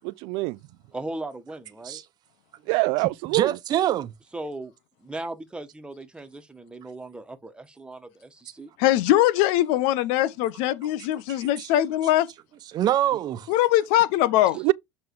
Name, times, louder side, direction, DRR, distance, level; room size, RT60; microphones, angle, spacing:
voice 1, 0.0-0.6 2.7-3.6 14.5-14.7, right 24 dB, 65° right, 0.5 m, -24 dB
voice 2, 0.9-2.0 4.3-4.7 5.0-8.7, right 2 dB, 10° right, 1.6 m, -37 dB
voice 3, 3.3-4.1 11.6-11.7 12.7-13.5, right 12 dB, 45° right, 1.0 m, -24 dB
voice 4, 8.8-12.3 13.5-14.6, left 14 dB, 65° left, 0.9 m, -21 dB
8.0 x 3.5 x 4.8 m
hypercardioid pair, 90°, 9 cm